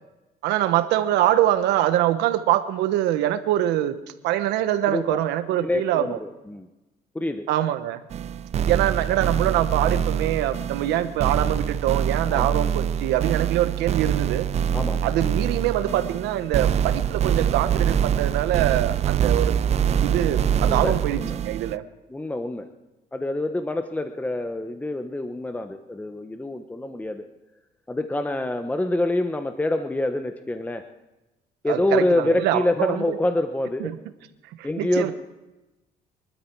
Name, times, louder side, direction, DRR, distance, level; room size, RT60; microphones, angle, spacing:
voice 1, 0.4-4.0 4.2-6.2 7.5-8.0 8.6-14.5 15.0-19.5 20.0-21.8 31.7-33.2 33.8-34.0 34.6-35.1, right 13 dB, 90° right, 10 dB, 1.2 m, -24 dB
voice 2, 4.9-5.2 5.6-6.7 7.1-7.5 12.3-12.6 14.7-15.1 20.3-21.4 22.1-22.7 23.1-27.3 27.9-30.8 31.6-33.9 34.6-35.1, left 1 dB, 10° left, 7 dB, 0.9 m, -26 dB
sound 1, 8.1-21.8, right 8 dB, 40° right, 0.4 m, -24 dB
24.0 x 12.5 x 4.6 m, 1.0 s
cardioid pair, 110°, 17 cm